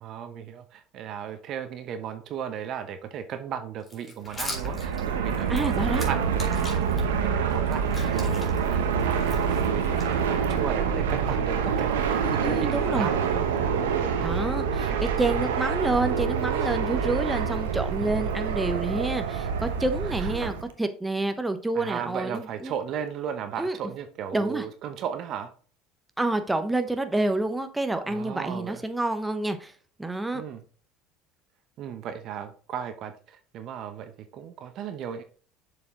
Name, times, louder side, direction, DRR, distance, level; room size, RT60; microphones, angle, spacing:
voice 1, 0.0-6.5 6.9-14.2 14.9-15.0 20.1-20.5 21.7-25.5 28.0-28.8 30.3-30.6 31.8-35.2, right 8 dB, 55° right, 9 dB, 0.9 m, -36 dB
sound 1, 3.8-7.0 7.5-10.6, left 2 dB, 25° left, 2.5 m, -41 dB
Fixed-wing aircraft airplane, 4.3-20.7, right 6 dB, 80° right, 0.9 m, -26 dB
voice 2, 5.5-6.0 12.2-13.1 14.2-22.7 23.6-23.8 24.3-24.7 26.2-29.7 30.0-30.4, right 2 dB, 10° right, 8 dB, 0.9 m, -28 dB
7.0 x 5.1 x 3.8 m, 0.41 s
hypercardioid pair, 75°, 0 cm